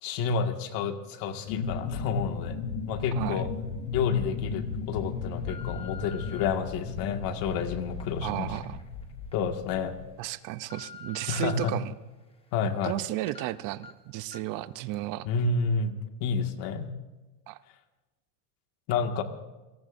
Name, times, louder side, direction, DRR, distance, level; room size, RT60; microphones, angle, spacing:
voice 1, 0.0-2.6 2.9-3.5 3.9-8.5 9.3-10.0 11.3-11.7 12.5-12.9 15.2-15.9 16.2-16.9 18.9-19.2, left 5 dB, 55° left, 6 dB, 2.0 m, -29 dB
sound 1, 1.5-10.0, left 4 dB, 90° left, 2.6 m, -36 dB
sound 2, 3.2-3.3 3.9-4.2 4.8-6.5 7.1-9.4 9.8-9.9 10.4-11.7 12.1-13.0 13.3-13.4 13.8-13.9 14.3-14.6 14.9-15.0, left 5 dB, 15° left, 1.5 m, -48 dB
voice 2, 8.2-8.8 10.2-11.9 12.8-15.3 17.5-17.6, right 16 dB, 50° right, 16 dB, 0.7 m, -33 dB
28.5 x 18.5 x 2.6 m, 1.2 s
supercardioid pair, 135°, 41 cm